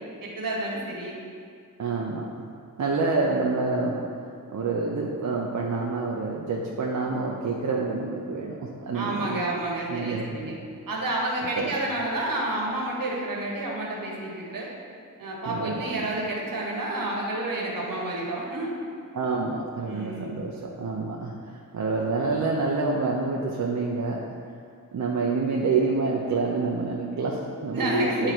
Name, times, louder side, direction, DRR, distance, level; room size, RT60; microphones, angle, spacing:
voice 1, 0.2-1.2 8.9-10.5 10.9-14.7 15.2-18.7 19.9-20.4 27.7-28.3, right 1 dB, 75° right, -3 dB, 1.5 m, -29 dB
voice 2, 1.8-2.3 2.8-4.0 4.5-9.4 9.9-10.5 11.6-11.7 15.5-16.1 19.1-24.2 24.9-28.3, right 3 dB, 60° right, -2 dB, 0.7 m, -27 dB
9.8 x 3.8 x 4.5 m, 2.3 s
wide cardioid pair, 115°, 34 cm